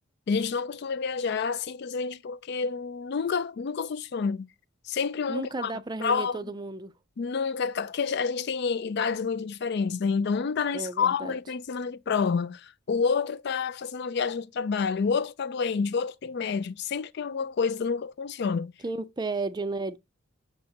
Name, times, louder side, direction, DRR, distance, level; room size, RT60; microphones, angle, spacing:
voice 1, 0.3-4.5 4.9-5.7 6.0-6.4 7.2-18.7, left 5 dB, 50° left, 0.4 m, -28 dB
voice 2, 5.3-6.9 10.7-11.4 18.8-20.0, right 3 dB, 20° right, 0.4 m, -33 dB
6.5 x 5.5 x 2.8 m
head